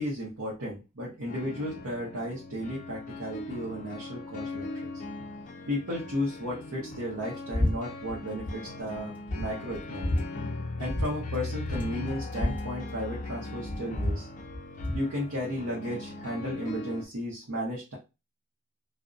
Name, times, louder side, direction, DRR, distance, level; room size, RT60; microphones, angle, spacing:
voice 1, 0.0-4.7 4.9-5.0 5.7-10.2 10.8-14.3 14.9-18.0, equal, 70° right, -4 dB, 0.7 m, -34 dB
sound 1, 1.3-17.0, left 2 dB, 35° left, 0.4 m, -39 dB
sound 2, 7.5-7.7 8.0-8.6 8.9-9.0 9.3-10.2 10.9-11.1 11.3-11.4 11.6-13.3 13.6-15.1, left 1 dB, 10° right, 0.9 m, -30 dB
2.5 x 2.0 x 2.5 m, 0.28 s
head